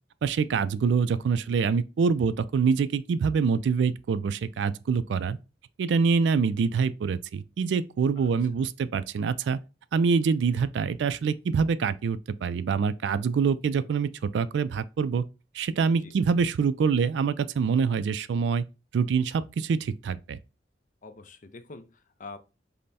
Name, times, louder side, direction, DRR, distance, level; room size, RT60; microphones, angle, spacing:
voice 1, 0.2-5.4 5.8-9.6 9.9-15.2 15.5-18.6 18.9-20.4, right 5 dB, 75° right, 0.3 m, -25 dB
voice 2, 21.0-22.4, left 3 dB, 45° left, 0.5 m, -45 dB
5.3 x 2.1 x 4.1 m
head